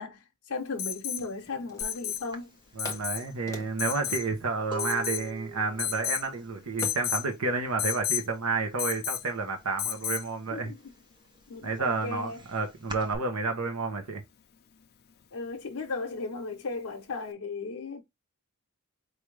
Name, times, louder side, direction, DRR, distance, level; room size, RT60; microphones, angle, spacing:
voice 1, 0.0-2.5 10.5-10.9 11.5-12.4 15.3-18.0, left 3 dB, 80° left, 0.7 m, -36 dB
Alarm, 0.8-1.3 1.8-2.3 2.8-3.2 3.8-4.3 4.8-5.3 5.8-6.3 6.8-7.3 7.8-8.3 8.8-9.3 9.8-10.3 12.0-12.1, left 11 dB, 45° left, 0.5 m, -32 dB
sound 1, 1.2-2.3 2.8-5.3 6.8-7.2, left 2 dB, 15° left, 1.0 m, -45 dB
sound 2, 1.8-2.0 2.3-8.0 8.3-8.8 9.1-10.2 10.6-13.2, right 2 dB, 20° right, 0.7 m, -43 dB
voice 2, 2.8-10.7 11.6-14.2, right 3 dB, 70° right, 0.9 m, -30 dB
4.7 x 2.6 x 3.2 m
head